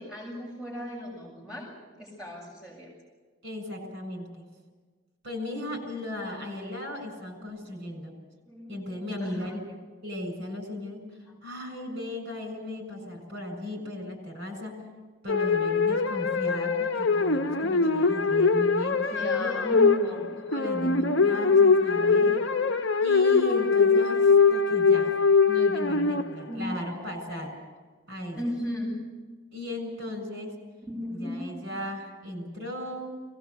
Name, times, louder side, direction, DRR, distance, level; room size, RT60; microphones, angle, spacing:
voice 1, 0.0-1.7 2.0-2.9 8.5-9.5 19.1-20.3 20.8-21.8 22.0-22.4 26.5-26.8 28.4-29.0 30.9-31.6, left 1 dB, 5° right, -5 dB, 7.0 m, -36 dB
voice 2, 3.4-4.4 5.2-8.2 8.7-9.6 10.0-11.0 11.4-14.8 15.2-19.7 20.0-22.4 23.0-25.1 25.5-27.5 28.1-28.4 29.5-30.5 31.1-33.1, left 1 dB, 55° right, 5 dB, 7.3 m, -36 dB
sound 1, 15.3-26.6, left 4 dB, 65° left, 0.8 m, -22 dB
23.0 x 19.0 x 8.3 m, 1.4 s
head